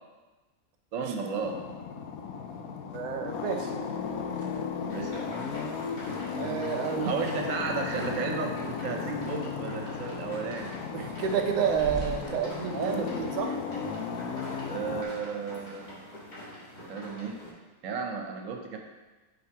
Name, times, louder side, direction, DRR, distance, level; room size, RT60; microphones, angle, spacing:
voice 1, 0.9-1.6 4.9-5.3 7.0-10.7 12.7-13.1 14.7-16.0 16.9-17.4 17.8-18.8, right 4 dB, 65° right, 3 dB, 1.1 m, -33 dB
sound 1, 1.4-15.0, left 6 dB, 75° left, 1.0 m, -35 dB
voice 2, 2.9-3.7 6.4-7.1 10.9-13.6, right 7 dB, 90° right, 3 dB, 0.4 m, -30 dB
sound 2, 4.0-13.4, right 1 dB, 5° left, 1.0 m, -48 dB
sound 3, 4.9-17.5, equal, 30° left, 1.6 m, -45 dB
7.8 x 4.7 x 2.9 m, 1.2 s
omnidirectional pair, 1.6 m